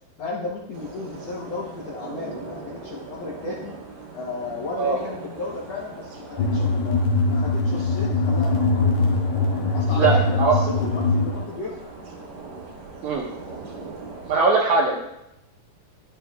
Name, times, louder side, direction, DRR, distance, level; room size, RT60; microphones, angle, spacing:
voice 1, 0.2-3.7 4.1-7.0 7.3-9.1 9.7-11.9, left 3 dB, 70° left, -5 dB, 1.5 m, -34 dB
sound 1, 0.7-14.4, right 3 dB, 55° right, 2.5 m, -40 dB
sound 2, 6.4-11.4, left 3 dB, 85° left, 2.8 m, -22 dB
voice 2, 10.0-10.6 13.0-13.2 14.3-15.0, right 4 dB, 75° right, -1 dB, 1.9 m, -20 dB
11.0 x 7.4 x 2.3 m, 0.84 s
omnidirectional pair, 4.3 m